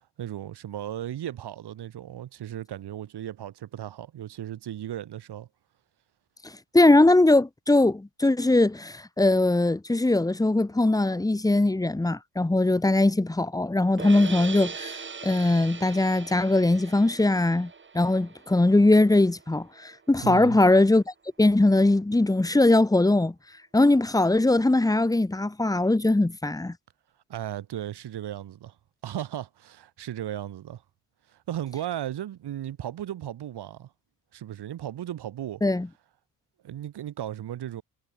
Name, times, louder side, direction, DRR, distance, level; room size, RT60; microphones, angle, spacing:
voice 1, 0.2-5.5 20.2-20.6 27.3-28.8 29.0-30.8 31.3-33.9 34.3-35.6 36.6-37.8, right 11 dB, 80° right, 2.8 m, -35 dB
voice 2, 6.7-15.0 15.2-17.7 17.9-21.0 21.4-23.3 23.7-26.7 35.6-35.9, left 2 dB, 10° left, 1.0 m, -21 dB
sound 1, 14.0-20.1, right 5 dB, 30° right, 1.4 m, -40 dB
cardioid pair, 90°, 39 cm